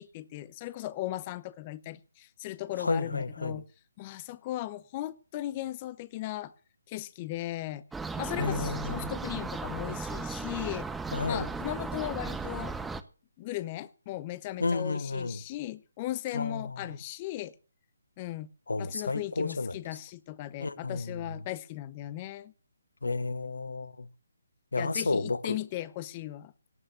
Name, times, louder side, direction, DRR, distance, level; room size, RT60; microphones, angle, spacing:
voice 1, 0.0-3.6 4.0-6.5 6.9-7.8 8.2-10.9 11.3-12.8 13.4-17.5 18.2-18.5 18.8-22.5 24.8-26.5, left 15 dB, 30° left, 0.7 m, -37 dB
voice 2, 2.8-3.6 8.4-9.1 11.1-11.5 14.6-15.4 16.3-16.9 18.7-19.8 20.6-21.2 23.0-24.1 24.7-25.6, left 3 dB, 85° left, 1.0 m, -31 dB
sound 1, 7.9-13.0, right 4 dB, 5° right, 0.8 m, -36 dB
18.0 x 6.6 x 8.1 m
figure-of-eight pair, 150°, 0 cm